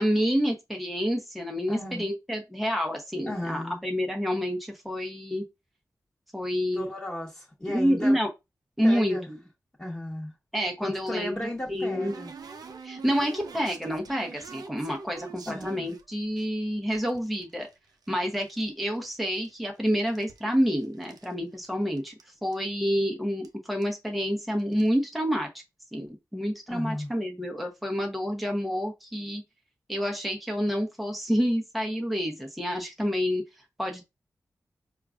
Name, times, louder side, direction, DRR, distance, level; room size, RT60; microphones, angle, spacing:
voice 1, 0.0-5.4 6.3-6.9 7.7-8.3 8.8-9.4 10.5-12.1 12.8-17.7 18.1-22.1 22.4-25.5 25.9-29.4 29.9-33.4 33.8-34.0, equal, ahead, 0.8 m, -28 dB
voice 2, 1.7-2.1 3.3-3.8 6.7-8.2 8.8-9.3 9.8-10.3 10.8-12.3 15.4-15.9 26.7-27.1, left 1 dB, 20° left, 1.2 m, -34 dB
sound 1, 11.0-16.5 16.9-18.7 19.0-19.7 20.0-21.3 21.6-21.7 22.0-22.2 22.5-22.6 23.4-23.5 23.8-24.1 24.6-24.9, right 5 dB, 85° right, 0.5 m, -46 dB
4.5 x 2.4 x 2.4 m
cardioid pair, 60°, 6 cm